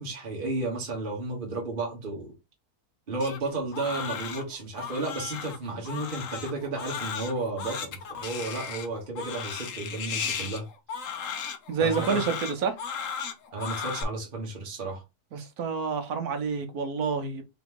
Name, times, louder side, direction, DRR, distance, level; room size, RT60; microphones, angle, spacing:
voice 1, 0.0-2.3 3.1-10.7 11.8-12.2 13.5-15.0, right 2 dB, 35° right, 1.4 m, -33 dB
Crying sobbing, 3.2-14.0, left 7 dB, 60° left, 1.1 m, -36 dB
voice 2, 11.7-12.7 15.3-17.4, right 5 dB, 70° right, 1.4 m, -28 dB
4.0 x 3.0 x 3.6 m
omnidirectional pair, 1.7 m